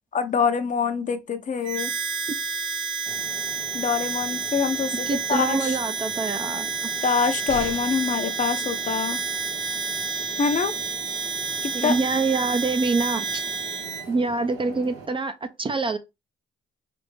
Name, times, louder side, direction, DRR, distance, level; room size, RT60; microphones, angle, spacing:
voice 1, 0.1-1.9 3.7-5.8 7.0-9.2 10.4-10.7 11.6-12.0, left 6 dB, 40° left, 0.6 m, -25 dB
Harmonica, 1.6-14.1, right 5 dB, 65° right, 1.2 m, -30 dB
sound 1, 3.1-15.1, right 4 dB, 85° right, 1.0 m, -42 dB
voice 2, 5.1-6.9 11.7-13.4 14.1-16.0, right 3 dB, 25° right, 0.4 m, -25 dB
sound 2, 7.5-8.2 10.2-10.3 10.6-10.7, left 5 dB, 75° left, 1.1 m, -37 dB
3.4 x 2.5 x 3.2 m
cardioid pair, 90°, 20 cm